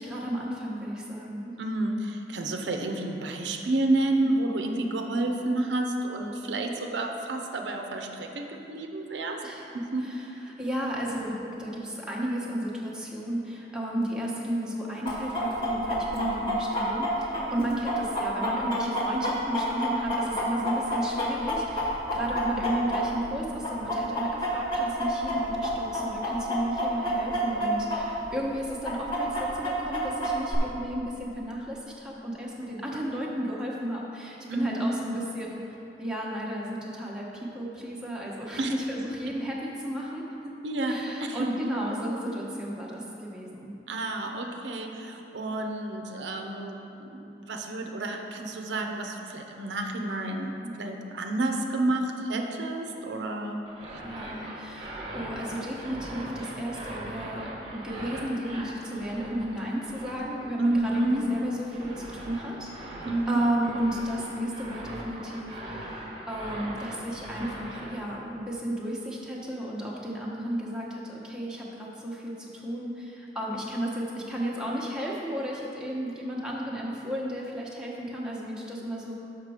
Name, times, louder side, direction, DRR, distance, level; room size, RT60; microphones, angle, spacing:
voice 1, 0.0-1.6 4.1-4.5 9.4-9.7 10.0-10.2 10.6-35.6 36.0-40.5 40.9-43.7 50.6-51.0 54.0-79.1, equal, 5° right, -5 dB, 0.9 m, -33 dB
voice 2, 1.6-9.4 9.7-10.1 11.3-11.4 17.5-17.6 34.5-34.9 35.1-35.3 38.6-38.7 40.6-40.9 41.2-41.5 43.9-50.5 50.8-53.6 53.9-54.0 60.6-61.2 63.0-63.8, right 2 dB, 90° right, 3 dB, 0.6 m, -30 dB
Chicken rooster, 15.1-23.4 23.6-28.0 28.3-28.4 28.8-30.6, equal, 30° left, 1.3 m, -28 dB
sound 1, 53.7-68.1, right 1 dB, 30° right, 1.0 m, -41 dB
6.6 x 6.0 x 4.8 m, 2.9 s
head